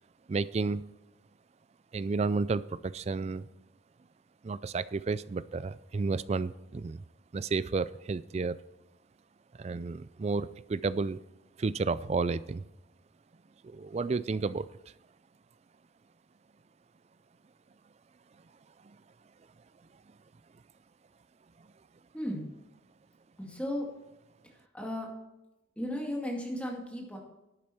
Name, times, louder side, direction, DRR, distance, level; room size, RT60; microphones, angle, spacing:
voice 1, 0.3-0.8 1.9-3.5 4.4-7.0 7.3-8.6 9.6-11.2 11.6-12.6 13.6-14.7, right 4 dB, 35° right, 17 dB, 0.3 m, -31 dB
voice 2, 22.1-22.5 23.4-23.9 24.7-25.1 25.8-27.2, left 1 dB, 5° left, -1 dB, 2.2 m, -35 dB
12.0 x 8.8 x 4.5 m, 0.94 s
head